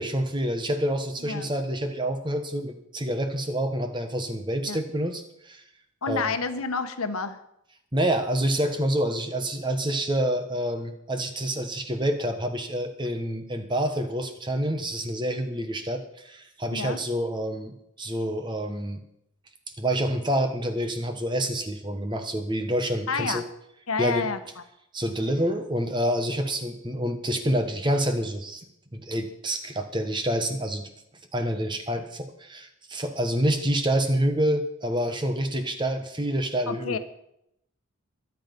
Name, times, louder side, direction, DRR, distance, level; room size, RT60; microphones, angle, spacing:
voice 1, 0.0-5.6 6.1-6.3 7.9-19.0 19.8-23.4 24.0-24.3 24.9-28.6 28.9-30.9 31.3-37.0, right 1 dB, 20° right, 6 dB, 1.2 m, -27 dB
voice 2, 1.2-1.5 4.7-4.8 6.0-7.4 16.7-17.0 23.1-23.4 23.9-24.4 36.7-37.0, left 4 dB, 80° left, 9 dB, 1.2 m, -29 dB
22.5 x 8.3 x 5.4 m, 0.79 s
head